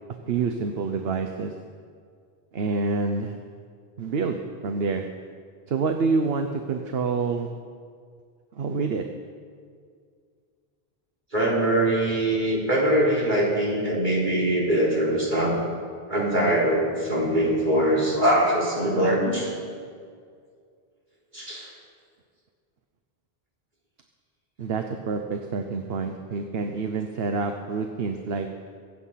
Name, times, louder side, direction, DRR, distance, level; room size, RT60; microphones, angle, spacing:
voice 1, 0.3-1.5 2.5-3.4 4.0-5.1 5.7-7.5 8.6-9.1 24.6-28.5, right 4 dB, 70° right, 6 dB, 1.0 m, -27 dB
voice 2, 11.3-15.5 16.1-19.5 21.3-21.7, right 1 dB, 50° right, -4 dB, 3.9 m, -22 dB
23.5 x 8.5 x 5.7 m, 2.1 s
omnidirectional pair, 1.1 m